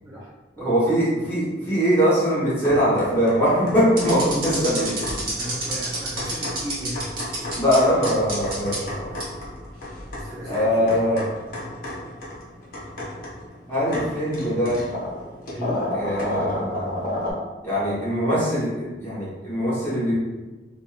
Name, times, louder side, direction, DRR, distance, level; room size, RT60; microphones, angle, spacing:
voice 1, 0.6-5.1 7.6-9.0 10.4-11.2 13.7-14.8 15.9-16.8 17.6-20.1, equal, 15° left, -10 dB, 1.1 m, -22 dB
sound 1, 2.6-17.3, left 1 dB, 50° left, 0.7 m, -33 dB
sound 2, 4.0-7.8 8.0-8.8 9.2-9.3 10.0-10.2, right 2 dB, 55° right, 0.9 m, -29 dB
voice 2, 5.3-7.0 10.2-11.0 15.5-15.9, equal, 20° right, -7 dB, 0.3 m, -34 dB
2.8 x 2.1 x 2.4 m, 1.2 s
head